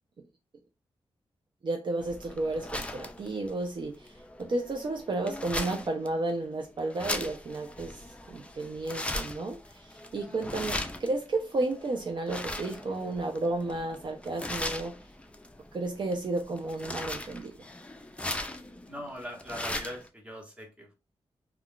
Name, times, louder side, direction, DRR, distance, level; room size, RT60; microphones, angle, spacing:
voice 1, 1.6-8.0 8.3-14.9 15.7-17.5, right 2 dB, 50° right, 0.5 m, -32 dB
sound 1, 2.0-20.1, left 1 dB, 10° left, 0.4 m, -39 dB
voice 2, 18.9-20.9, equal, 10° right, 1.1 m, -41 dB
2.3 x 2.3 x 3.6 m
wide cardioid pair, 100°, 10 cm